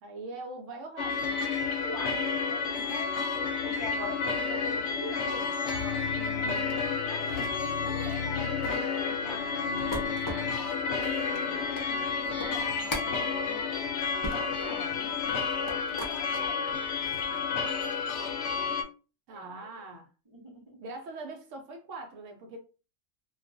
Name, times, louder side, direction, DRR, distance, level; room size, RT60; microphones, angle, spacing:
voice 1, 0.0-1.5 6.1-6.8 19.3-20.1 20.8-22.6, right 2 dB, 70° right, 0.9 m, -42 dB
sound 1, 1.0-18.8, left 5 dB, 65° left, 0.8 m, -31 dB
voice 2, 1.8-3.2 3.5-6.4 7.0-10.7 11.1-13.8 14.3-15.1 15.9-16.7 19.3-19.8 20.3-20.8, left 1 dB, 25° right, 0.7 m, -44 dB
sound 2, 8.7-16.2 16.7-17.3, equal, 25° left, 0.4 m, -40 dB
2.3 x 2.3 x 2.5 m
omnidirectional pair, 1.4 m